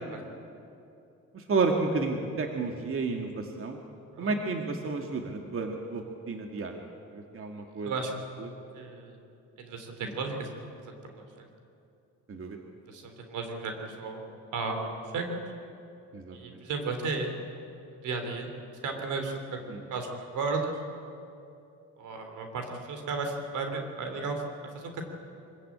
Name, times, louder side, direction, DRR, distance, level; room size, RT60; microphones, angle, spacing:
voice 1, 1.3-3.8 4.2-6.8 7.1-7.9 8.4-8.5 10.0-10.1 12.3-12.6 16.1-16.6 19.7-19.8, right 3 dB, 45° right, 3 dB, 2.0 m, -31 dB
voice 2, 7.8-8.1 8.7-9.2 9.6-10.5 10.9-11.3 12.9-14.3 14.5-15.4 16.3-17.3 17.9-18.5 18.8-19.6 19.9-20.8 22.0-24.4 24.7-25.0, right 3 dB, 80° right, 5 dB, 3.5 m, -34 dB
24.0 x 15.0 x 8.7 m, 2.7 s
cardioid pair, 90°, 30 cm